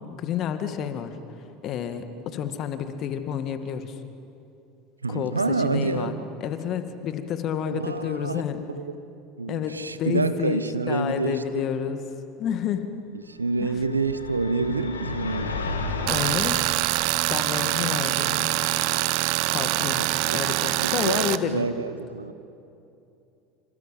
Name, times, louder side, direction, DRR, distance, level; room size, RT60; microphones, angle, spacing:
voice 1, 0.2-1.2 1.6-4.0 5.1-6.1 6.4-8.7 9.5-12.0 12.4-12.9 13.6-13.7 16.1-16.6 17.3-18.5 19.5-20.1 20.3-21.7, left 8 dB, 45° left, 9 dB, 2.1 m, -30 dB
voice 2, 5.0-6.2 7.7-8.4 8.8-8.9 9.4-11.4 13.3-15.5 20.0-20.4 20.8-22.3, right 3 dB, 90° right, 13 dB, 1.0 m, -27 dB
sound 1, 13.6-16.5, left 3 dB, 80° left, 2.4 m, -32 dB
Tools, 16.1-21.4, right 17 dB, 60° right, 0.9 m, -24 dB
27.5 x 26.0 x 7.7 m, 2.7 s
figure-of-eight pair, 75°, 0 cm